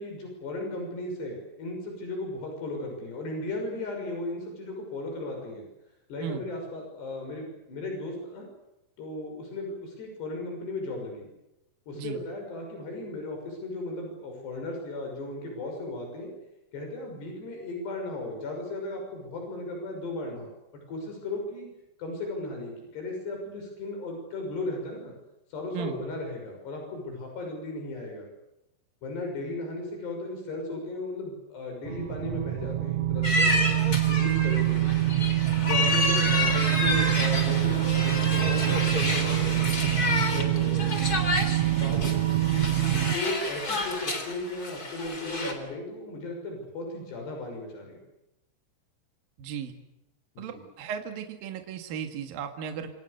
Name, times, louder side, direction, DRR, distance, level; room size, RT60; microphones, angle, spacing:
voice 1, 0.0-5.6 6.1-8.5 9.0-11.3 11.9-16.3 16.7-20.5 20.9-21.7 22.0-25.1 25.5-28.3 29.0-33.7 34.0-35.0 35.6-39.8 40.3-40.9 41.8-48.0 50.4-50.5, left 2 dB, 85° left, 2 dB, 8.3 m, -36 dB
sound 1, 31.8-43.1, right 14 dB, 85° right, 1.5 m, -25 dB
sound 2, 33.2-45.5, left 2 dB, 25° left, 3.7 m, -29 dB
voice 2, 49.4-49.7 50.4-52.9, right 8 dB, 65° right, 6 dB, 3.5 m, -35 dB
27.0 x 27.0 x 6.7 m, 0.91 s
omnidirectional pair, 4.7 m